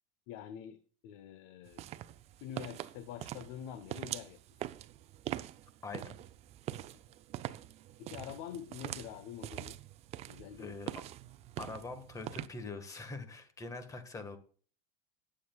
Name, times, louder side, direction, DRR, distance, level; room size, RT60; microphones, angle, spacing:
voice 1, 0.3-1.8 2.4-4.4 6.9-7.0 8.0-9.8 10.3-10.7, left 9 dB, 65° left, 11 dB, 0.9 m, -46 dB
sound 1, 1.7-12.5, right 13 dB, 35° right, 0.5 m, -44 dB
voice 2, 5.8-6.2 10.6-11.0 11.6-14.4, left 3 dB, 20° left, 9 dB, 1.6 m, -43 dB
18.5 x 7.7 x 2.3 m, 0.42 s
supercardioid pair, 140°, 18 cm